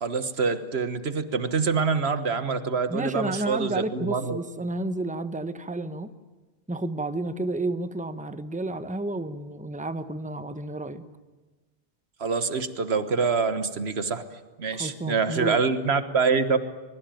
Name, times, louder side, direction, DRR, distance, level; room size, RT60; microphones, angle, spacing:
voice 1, 0.0-4.4 12.2-14.2 14.6-16.6, right 5 dB, 90° right, 12 dB, 1.6 m, -25 dB
voice 2, 2.9-6.1 6.7-11.0 14.7-15.6, right 2 dB, 10° right, 11 dB, 1.0 m, -31 dB
23.5 x 22.0 x 9.2 m, 1.2 s
omnidirectional pair, 1.0 m